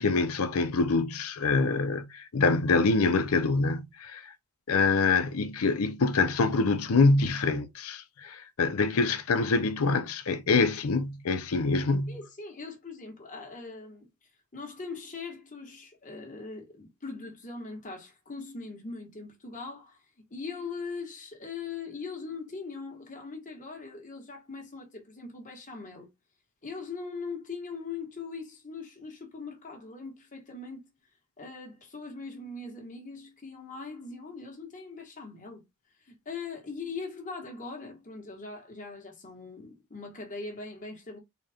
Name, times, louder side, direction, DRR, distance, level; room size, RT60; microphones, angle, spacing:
voice 1, 0.0-4.3 4.7-12.2, left 3 dB, 70° left, 0.6 m, -25 dB
voice 2, 12.1-14.1 14.5-20.0 20.3-26.1 26.6-30.9 31.4-35.6 36.0-41.2, left 4 dB, 35° left, 1.3 m, -41 dB
4.0 x 2.3 x 3.4 m
head